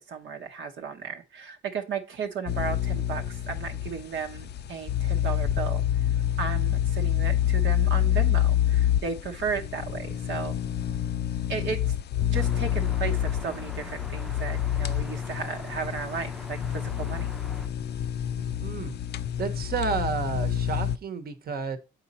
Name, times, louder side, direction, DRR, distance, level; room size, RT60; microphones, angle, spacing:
voice 1, 0.0-6.1 6.4-10.6 11.5-11.9 12.3-17.3, right 5 dB, 70° right, 1.0 m, -34 dB
sound 1, 2.5-21.0, left 10 dB, 55° left, 0.5 m, -27 dB
sound 2, 12.3-17.7, equal, ahead, 0.6 m, -43 dB
voice 2, 18.6-19.0 19.4-21.8, right 5 dB, 50° right, 1.1 m, -31 dB
7.7 x 4.2 x 4.2 m
cardioid pair, 90°, 20 cm